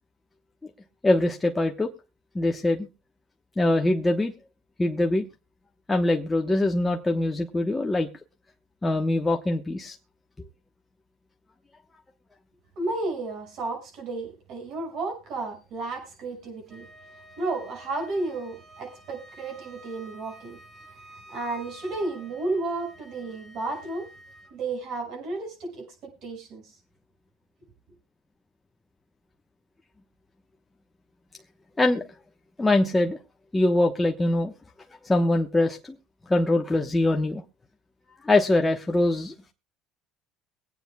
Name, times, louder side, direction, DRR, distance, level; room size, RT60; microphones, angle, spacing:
voice 1, 1.0-1.9 2.3-2.9 3.6-4.3 4.8-5.2 5.9-8.1 8.8-10.0 31.8-32.0 32.6-33.2 33.5-34.5 35.0-36.0 36.3-37.4 38.2-39.3, left 2 dB, 15° left, 1.0 m, -23 dB
voice 2, 12.8-16.9 17.4-20.6 21.3-24.1 24.5-26.7, right 2 dB, 60° right, 6.0 m, -32 dB
Wind instrument woodwind instrument, 16.7-24.5, right 1 dB, 40° right, 5.7 m, -50 dB
23.0 x 9.0 x 2.3 m
supercardioid pair, 105°, 0 cm